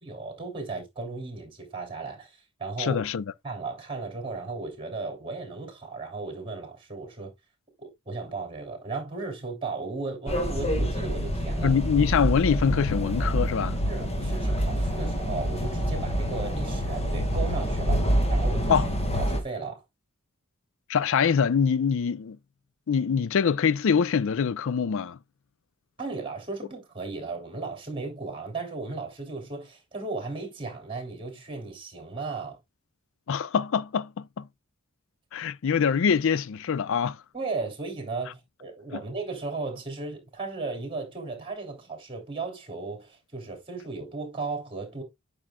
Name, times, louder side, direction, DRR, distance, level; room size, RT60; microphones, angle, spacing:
voice 1, 0.0-3.0 3.4-7.3 7.8-11.7 13.8-18.7 19.2-19.8 26.0-32.6 37.3-45.0, right 3 dB, 25° right, 3.0 m, -35 dB
voice 2, 2.8-3.2 11.6-13.8 18.7-18.9 20.9-22.4 22.9-25.2 33.3-34.5 35.3-37.2 38.9-39.0, left 6 dB, 65° left, 0.4 m, -24 dB
sound 1, 10.3-19.4, equal, 30° left, 1.6 m, -27 dB
8.9 x 6.3 x 2.2 m
head